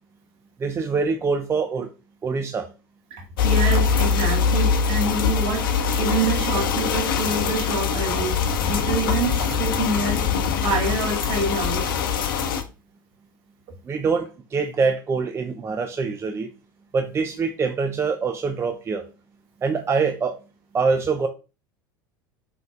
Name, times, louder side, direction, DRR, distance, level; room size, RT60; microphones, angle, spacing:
voice 1, 0.6-1.9 2.2-2.7 13.9-16.5 16.9-19.0 19.6-20.4 20.7-21.3, right 4 dB, 25° right, 0.5 m, -24 dB
voice 2, 3.1-8.4 8.7-10.3 10.6-12.0, right 3 dB, 55° right, 1.3 m, -27 dB
sound 1, 3.4-12.6, left 6 dB, 75° left, 0.6 m, -23 dB
5.2 x 3.9 x 2.4 m
hypercardioid pair, 80°, 11 cm